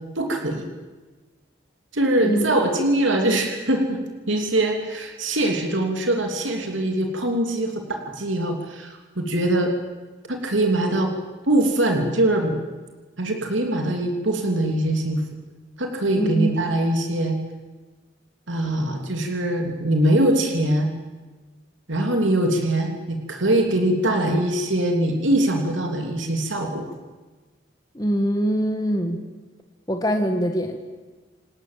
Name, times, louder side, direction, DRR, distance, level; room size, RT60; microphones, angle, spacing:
voice 1, 0.1-0.7 1.9-4.0 4.3-9.7 10.3-11.1 11.5-12.5 13.2-15.2 15.8-17.4 18.5-20.9 21.9-26.9, right 1 dB, 80° right, 3 dB, 3.0 m, -22 dB
voice 2, 16.2-16.5 27.9-29.2 29.9-30.8, equal, 20° left, 5 dB, 1.7 m, -23 dB
29.0 x 19.0 x 7.6 m, 1.3 s
head